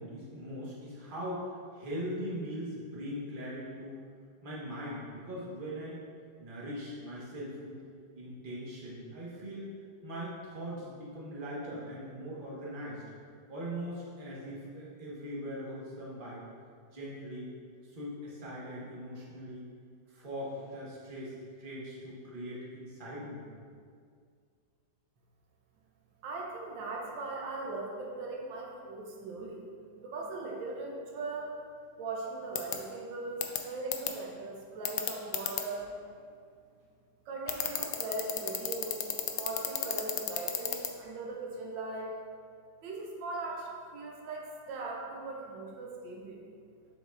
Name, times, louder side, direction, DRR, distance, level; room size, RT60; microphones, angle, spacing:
voice 1, 0.0-3.9 4.4-6.0 6.4-7.8 8.1-9.7 10.0-13.0 13.5-16.4 16.9-17.5 17.9-19.7 20.1-21.3 21.6-23.5, equal, 30° right, -6 dB, 1.4 m, -40 dB
voice 2, 26.2-29.6 30.0-31.6 32.0-35.9 37.2-42.2 42.8-46.4, right 2 dB, 85° right, -1 dB, 1.6 m, -39 dB
sound 1, 32.6-32.7 33.4-33.6 33.9-34.1 34.8-35.6 37.5-40.9, left 11 dB, 85° left, 1.3 m, -31 dB
7.1 x 5.9 x 2.6 m, 2.2 s
omnidirectional pair, 2.0 m